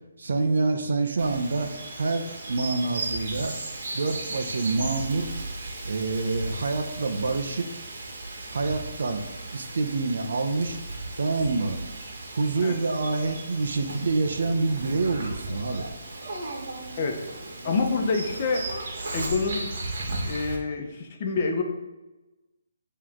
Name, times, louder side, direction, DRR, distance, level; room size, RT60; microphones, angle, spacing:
voice 1, 0.2-3.5 3.9-5.3 5.8-7.7 8.5-9.2 9.5-10.8 11.2-11.8 12.3-15.9, right 3 dB, 70° right, 5 dB, 0.8 m, -27 dB
Bird vocalization bird call bird song, 1.2-20.6, right 2 dB, 55° right, 1.6 m, -36 dB
voice 2, 17.6-18.7 19.1-19.7 20.3-21.6, left 4 dB, 40° left, 3 dB, 1.0 m, -27 dB
9.6 x 3.3 x 3.7 m, 1.1 s
hypercardioid pair, 155°, 0 cm